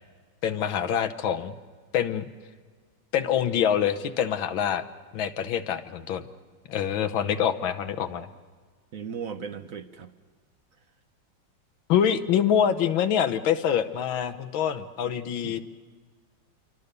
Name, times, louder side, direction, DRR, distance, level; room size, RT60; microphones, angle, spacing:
voice 1, 0.4-1.5 1.9-2.2 3.1-4.8 5.1-6.3 6.7-8.3 11.9-15.6, left 9 dB, 90° left, 10 dB, 1.8 m, -25 dB
voice 2, 8.9-10.1 15.4-15.6, right 6 dB, 55° right, 9 dB, 1.1 m, -36 dB
27.5 x 24.0 x 6.8 m, 1.5 s
omnidirectional pair, 2.1 m